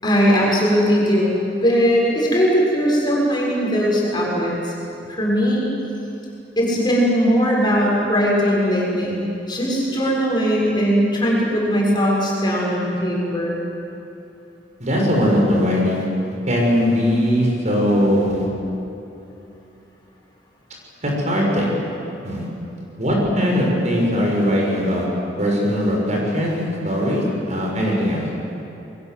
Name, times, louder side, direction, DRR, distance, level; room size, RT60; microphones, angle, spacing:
voice 1, 0.0-1.3 1.6-4.7 5.1-5.6 6.6-13.6, equal, 25° left, -4 dB, 6.8 m, -19 dB
voice 2, 14.8-16.1 16.5-18.5 21.0-21.7 22.2-22.4 23.0-25.1 25.4-28.2, equal, 40° right, -2 dB, 6.4 m, -20 dB
29.0 x 22.5 x 8.0 m, 2.8 s
head